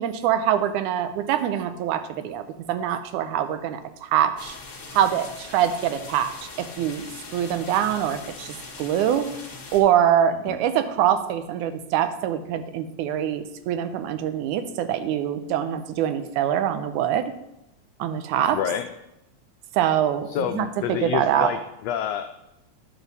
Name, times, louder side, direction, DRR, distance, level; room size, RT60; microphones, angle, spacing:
voice 1, 0.0-2.4 2.7-4.5 4.9-6.3 6.6-7.0 7.3-9.3 9.7-17.3 18.0-18.6 19.8-21.5, right 10 dB, 85° right, 10 dB, 2.1 m, -24 dB
sound 1, 4.4-9.8, left 4 dB, 40° left, 1.1 m, -41 dB
voice 2, 18.5-18.8 20.3-22.4, left 10 dB, 90° left, 7 dB, 1.4 m, -28 dB
10.0 x 7.1 x 4.0 m, 0.88 s
omnidirectional pair, 3.4 m